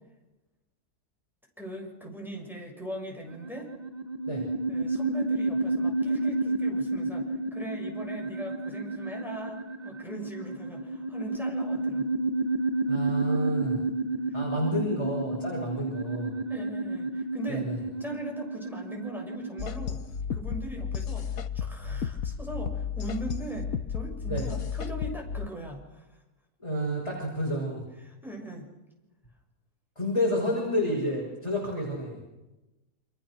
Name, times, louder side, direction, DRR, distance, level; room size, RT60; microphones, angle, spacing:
voice 1, 1.6-3.7 4.7-12.1 16.5-17.7 18.0-20.0 20.3-26.1 28.0-28.7, right 1 dB, ahead, -1 dB, 6.9 m, -40 dB
sound 1, 3.3-19.6, right 2 dB, 30° right, 1.5 m, -31 dB
voice 2, 12.9-13.8 14.3-16.3 17.5-17.8 24.3-24.4 26.6-27.8 30.0-32.2, equal, 20° left, -3 dB, 6.7 m, -29 dB
sound 2, 19.6-25.5, left 7 dB, 65° left, 1.6 m, -33 dB
29.5 x 26.0 x 6.6 m, 1.0 s
omnidirectional pair, 1.6 m